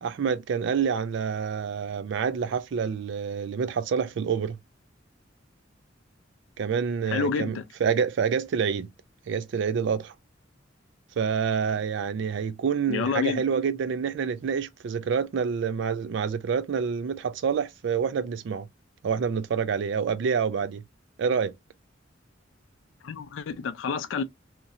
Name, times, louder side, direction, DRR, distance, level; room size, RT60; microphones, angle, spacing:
voice 1, 0.0-4.6 6.6-8.9 9.3-10.1 11.2-18.7 19.0-20.8 21.2-21.5, right 6 dB, 65° right, 0.4 m, -27 dB
voice 2, 7.1-7.6 12.9-13.4 23.0-24.2, left 5 dB, 75° left, 0.4 m, -28 dB
2.9 x 2.7 x 2.4 m
head